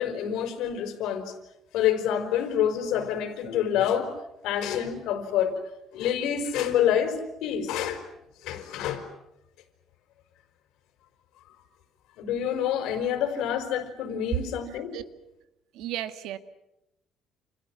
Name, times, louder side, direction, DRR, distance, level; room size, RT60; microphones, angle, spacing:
voice 1, 0.0-1.3 1.7-4.1 4.4-5.5 5.9-8.0 8.4-9.0 12.2-14.9, left 9 dB, 85° left, 4.9 m, -27 dB
voice 2, 15.7-16.4, right 12 dB, 80° right, 1.8 m, -34 dB
30.0 x 29.0 x 6.1 m
cardioid pair, 170°, 0 cm